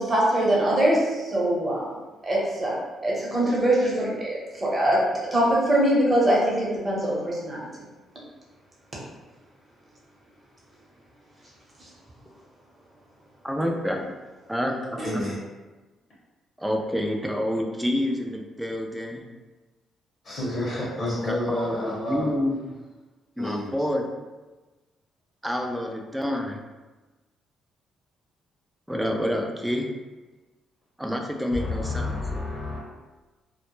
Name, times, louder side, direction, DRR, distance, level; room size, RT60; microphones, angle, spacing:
voice 1, 0.0-1.9 2.2-2.8 3.0-5.0 5.3-7.7 15.0-15.1, right 1 dB, 25° right, -5 dB, 0.9 m, -23 dB
voice 2, 13.4-14.1 14.5-15.3 16.6-19.2 21.2-22.6 23.4-24.1 25.4-26.6 28.9-29.9 31.0-32.5, equal, 5° right, 2 dB, 0.3 m, -28 dB
voice 3, 15.0-15.4 20.2-22.3 23.4-23.7 31.5-32.8, left 1 dB, 50° left, -7 dB, 0.8 m, -30 dB
2.1 x 2.0 x 3.0 m, 1.2 s
cardioid pair, 90°, 0 cm